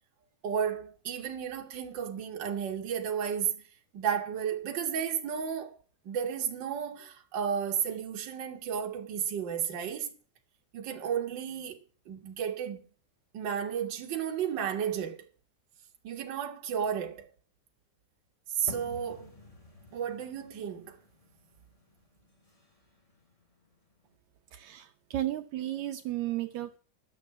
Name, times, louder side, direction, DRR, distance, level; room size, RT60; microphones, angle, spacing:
voice 1, 0.4-3.6 3.9-5.8 6.1-10.1 10.7-11.8 12.1-12.8 13.3-15.3 16.0-17.3 18.6-19.3 19.9-21.0, right 8 dB, 45° right, 1.8 m, -33 dB
sound 1, 18.7-24.1, left 2 dB, 40° left, 0.5 m, -51 dB
voice 2, 24.5-26.8, right 14 dB, 75° right, 1.9 m, -34 dB
11.0 x 6.4 x 8.5 m
omnidirectional pair, 3.5 m